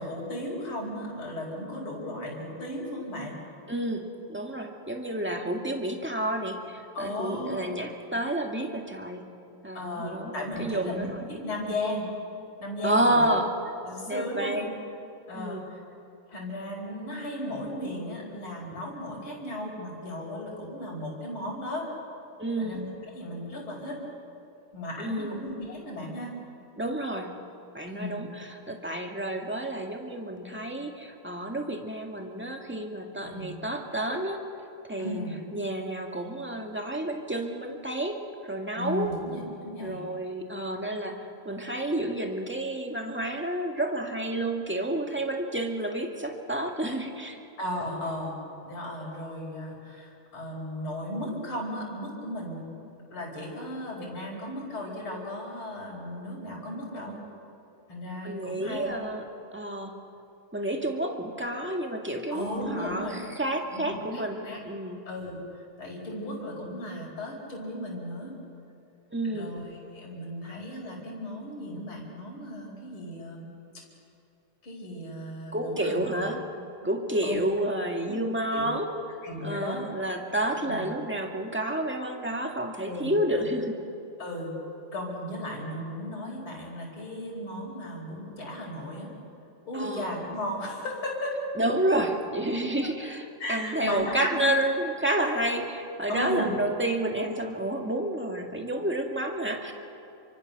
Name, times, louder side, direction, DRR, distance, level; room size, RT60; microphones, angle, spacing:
voice 1, 0.0-3.4 6.9-7.7 9.7-12.1 12.6-13.3 13.8-14.7 15.3-15.8 16.3-21.9 22.6-22.8 23.1-23.9 24.7-26.3 27.9-28.2 33.2-33.5 35.0-35.3 38.7-40.0 47.6-48.3 48.7-52.7 53.1-57.2 57.9-59.0 62.3-63.2 63.7-64.6 65.1-65.4 65.8-68.3 69.2-73.5 74.6-76.2 77.2-77.4 78.1-78.2 78.5-78.7 79.2-79.8 80.6-80.9 82.8-83.6 84.2-84.5 84.9-89.1 89.6-91.3 93.4-94.5 96.1-96.5, left 1 dB, 70° left, -2 dB, 5.6 m, -35 dB
voice 2, 3.7-4.0 4.3-9.3 9.6-11.5 12.8-13.5 14.1-14.7 15.3-15.6 22.4-22.8 25.0-25.4 26.8-27.3 27.7-34.4 34.9-35.2 35.5-39.1 39.8-47.4 58.2-59.2 59.5-59.9 60.5-65.0 69.1-69.5 75.5-76.4 76.8-78.9 79.4-83.7 89.7-90.1 91.6-99.7, right 1 dB, 5° right, 2 dB, 1.8 m, -30 dB
29.5 x 24.5 x 6.7 m, 2.7 s
omnidirectional pair, 2.4 m